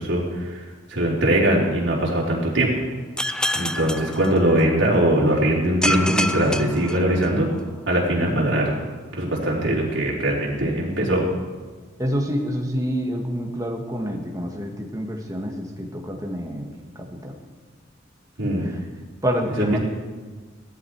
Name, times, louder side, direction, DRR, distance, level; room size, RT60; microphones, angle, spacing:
voice 1, 0.0-2.7 3.5-7.5 7.9-8.7 9.1-11.3 18.4-18.7 19.6-19.8, right 1 dB, 65° right, -4 dB, 4.1 m, -21 dB
sound 1, 3.2-4.9 5.8-7.6, left 1 dB, 5° left, 0.4 m, -27 dB
voice 2, 12.0-17.3 18.6-18.8 19.2-19.8, equal, 15° right, 2 dB, 1.6 m, -27 dB
17.5 x 13.5 x 4.6 m, 1.4 s
head